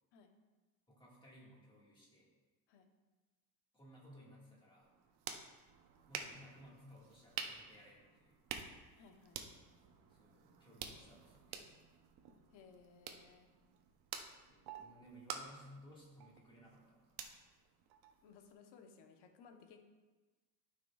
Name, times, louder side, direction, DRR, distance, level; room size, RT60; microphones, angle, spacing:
voice 1, 0.9-2.3 3.7-4.9 6.1-8.5 10.1-11.7 14.2-17.1, equal, 10° left, -5 dB, 1.8 m, -60 dB
sound 1, 4.8-18.5, right 7 dB, 65° right, 0.8 m, -50 dB
voice 2, 9.0-9.4 12.5-13.5 18.2-19.8, left 5 dB, 80° left, 5 dB, 1.0 m, -61 dB
12.5 x 5.8 x 2.4 m, 1.3 s
cardioid pair, 170°, 40 cm